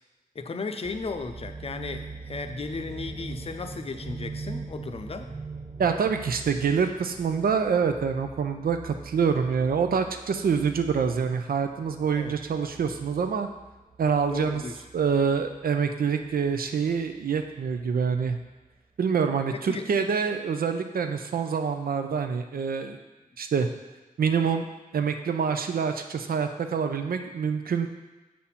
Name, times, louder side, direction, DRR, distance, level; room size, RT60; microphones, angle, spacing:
voice 1, 0.3-5.3 12.1-12.4 14.3-14.8 19.5-19.9, left 4 dB, 40° left, 7 dB, 0.6 m, -35 dB
sound 1, 0.8-18.7 19.1-19.2, right 4 dB, 25° right, 0.6 m, -43 dB
voice 2, 5.8-13.5 14.0-14.6 14.9-18.4 19.0-23.0 23.4-23.7 24.2-24.7 24.9-27.9, right 6 dB, 75° right, 7 dB, 0.6 m, -26 dB
7.6 x 4.2 x 5.7 m, 1.2 s
wide cardioid pair, 115°, 15 cm